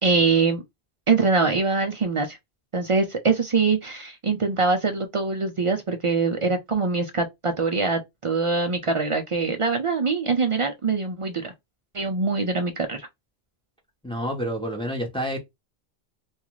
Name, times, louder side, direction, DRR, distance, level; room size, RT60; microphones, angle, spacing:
voice 1, 0.0-0.6 1.1-2.4 2.7-11.5 11.9-13.1, right 4 dB, 55° right, 0.3 m, -23 dB
voice 2, 14.0-15.4, equal, 5° left, 0.7 m, -28 dB
2.4 x 2.3 x 2.9 m
omnidirectional pair, 1.1 m